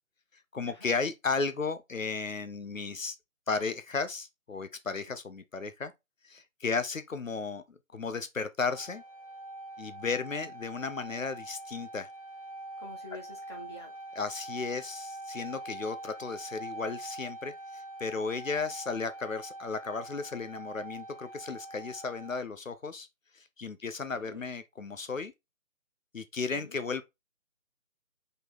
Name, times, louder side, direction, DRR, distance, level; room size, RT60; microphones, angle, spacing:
voice 1, 0.5-3.2 3.5-5.9 6.2-9.0 9.8-12.1 14.2-23.1 23.3-25.3 26.1-27.0, left 4 dB, 70° left, 0.8 m, -34 dB
sound 1, 8.7-22.4, right 1 dB, 25° right, 0.6 m, -44 dB
voice 2, 12.8-13.9 24.1-24.4 26.5-26.8, left 1 dB, 20° left, 1.1 m, -47 dB
5.1 x 4.4 x 4.1 m
figure-of-eight pair, 155°, 41 cm